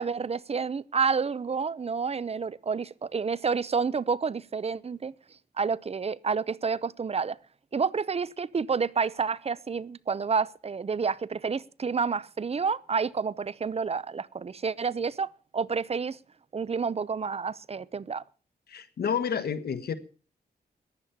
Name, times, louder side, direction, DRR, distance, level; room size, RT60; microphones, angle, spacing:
voice 1, 0.0-5.1 5.6-7.4 7.7-16.2 16.5-18.2, right 5 dB, 40° right, 0.7 m, -29 dB
voice 2, 18.7-19.9, left 7 dB, 75° left, 1.3 m, -30 dB
15.0 x 10.5 x 6.8 m
cardioid pair, 85°, 16 cm